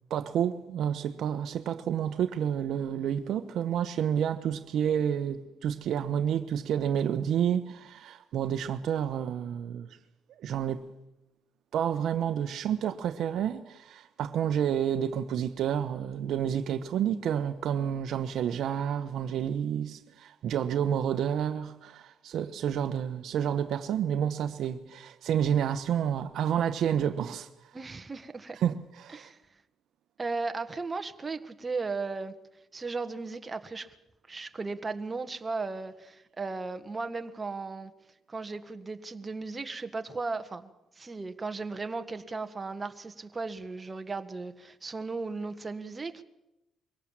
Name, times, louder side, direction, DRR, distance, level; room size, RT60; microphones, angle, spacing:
voice 1, 0.1-9.9 10.4-10.9 11.7-27.5 28.6-29.3, right 9 dB, 75° right, 1.0 m, -29 dB
voice 2, 27.7-28.6 29.1-29.4 30.2-32.3 32.7-33.9 34.3-37.9 38.3-40.7 41.0-46.2, right 3 dB, 25° right, 1.5 m, -36 dB
23.5 x 17.5 x 7.5 m
cardioid pair, 90°, 0 cm